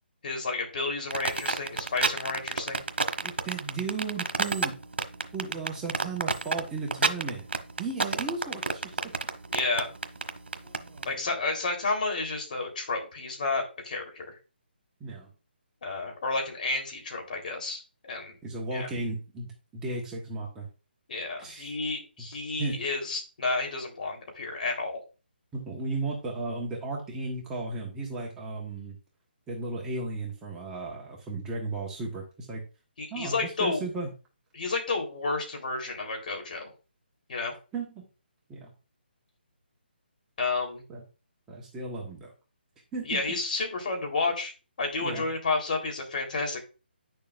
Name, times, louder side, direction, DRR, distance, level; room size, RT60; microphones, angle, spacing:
voice 1, 0.2-2.8 9.5-9.9 11.1-14.4 15.8-18.4 18.7-18.9 21.1-25.0 33.0-33.8 34.5-36.7 37.3-37.5 40.4-40.8 43.0-44.5 44.8-46.6, left 3 dB, 50° left, 2 dB, 3.6 m, -31 dB
sound 1, 1.1-11.1, right 3 dB, 85° right, 1.2 m, -28 dB
voice 2, 3.2-4.8 5.3-7.4 7.8-8.8 10.6-11.2 15.0-15.3 18.4-20.7 21.4-21.8 22.6-22.8 25.5-29.0 29.5-32.6 33.1-34.1 37.7-38.0 38.5-38.7 40.9-41.0 41.5-42.3 42.9-43.2 45.0-45.3, right 3 dB, 10° right, -2 dB, 1.2 m, -35 dB
10.0 x 6.8 x 2.5 m, 0.32 s
hypercardioid pair, 160°, 6 cm